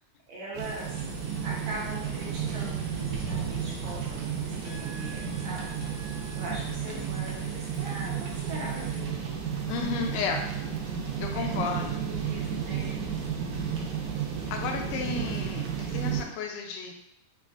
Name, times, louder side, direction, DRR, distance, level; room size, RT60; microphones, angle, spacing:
voice 1, 0.3-1.0 1.4-5.7 6.3-9.3 9.9-10.1 11.3-12.9, right 1 dB, 75° right, -5 dB, 1.8 m, -41 dB
sound 1, 0.5-16.2, right 7 dB, 90° right, 2.2 m, -32 dB
sound 2, 0.6-9.0, right 2 dB, 55° right, 0.5 m, -50 dB
Trumpet, 4.6-6.6, right 4 dB, 65° left, 1.3 m, -48 dB
voice 2, 9.7-10.4 11.2-12.0 14.5-16.9, left 5 dB, 85° left, 2 dB, 2.0 m, -32 dB
5.2 x 2.4 x 2.3 m, 0.80 s
omnidirectional pair, 3.5 m